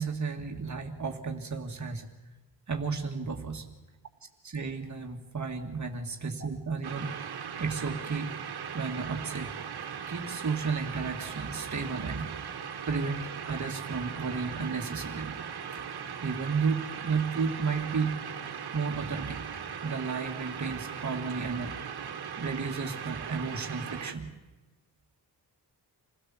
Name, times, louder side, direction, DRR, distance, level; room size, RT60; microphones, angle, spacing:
voice 1, 0.0-2.1 2.7-3.7 4.4-7.1 7.6-8.3 8.7-9.5 10.1-12.4 12.9-15.4 15.7-15.8 16.2-18.2 18.7-19.5 19.8-21.8 22.4-24.3, right 5 dB, 45° right, 3 dB, 2.0 m, -33 dB
sound 1, 6.8-24.1, right 7 dB, 75° right, 1.7 m, -39 dB
27.5 x 17.0 x 7.4 m, 1.2 s
wide cardioid pair, 125°, 39 cm